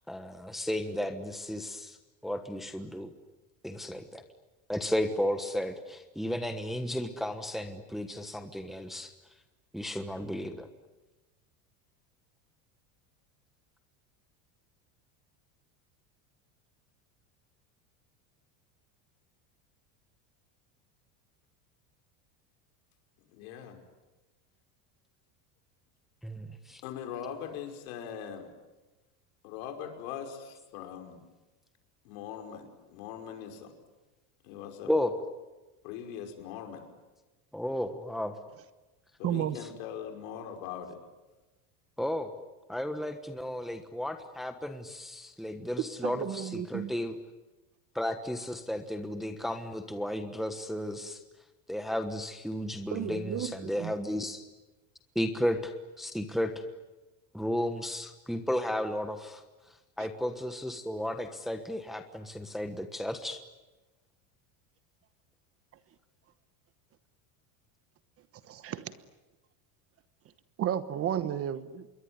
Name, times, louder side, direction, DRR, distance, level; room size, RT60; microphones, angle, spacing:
voice 1, 0.1-2.0 2.2-3.1 3.6-4.2 4.7-9.1 9.7-10.7 26.2-26.8 34.8-35.1 37.5-38.4 42.0-42.3 42.7-47.2 47.9-51.2 51.7-54.4 55.1-56.5 57.3-59.4 60.0-63.4, left 1 dB, ahead, 7 dB, 1.3 m, -33 dB
voice 2, 23.3-23.8 26.8-28.5 29.4-31.2 32.0-33.8 34.4-34.9 35.8-36.9 39.2-41.0, left 8 dB, 70° left, 5 dB, 5.5 m, -41 dB
voice 3, 39.2-39.6 46.0-46.9 52.9-53.9 60.0-60.1 68.4-69.0 70.6-71.9, right 10 dB, 30° right, 13 dB, 1.2 m, -33 dB
27.5 x 22.5 x 9.7 m, 1.1 s
cardioid pair, 155°, 43 cm